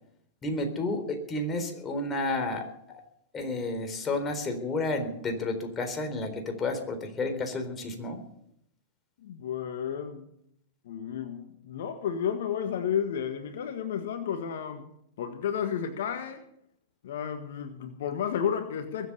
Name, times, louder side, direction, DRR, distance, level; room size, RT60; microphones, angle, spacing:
voice 1, 0.4-2.7 3.3-8.2, left 2 dB, 25° left, 5 dB, 3.9 m, -31 dB
voice 2, 9.2-10.3 10.8-14.9 15.2-16.4 17.0-19.1, left 8 dB, 70° left, 8 dB, 1.5 m, -32 dB
22.0 x 8.2 x 6.8 m, 0.74 s
hypercardioid pair, 110°, 0 cm